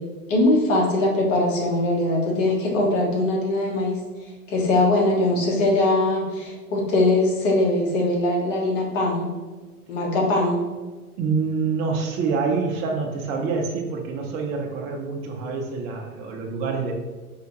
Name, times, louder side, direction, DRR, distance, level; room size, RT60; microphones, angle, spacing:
voice 1, 0.3-4.0 4.5-9.3 9.9-10.6, left 2 dB, 55° left, -1 dB, 1.4 m, -21 dB
voice 2, 11.2-16.9, right 4 dB, 20° right, 1 dB, 0.3 m, -26 dB
4.5 x 3.3 x 2.7 m, 1.3 s
hypercardioid pair, 110°, 44 cm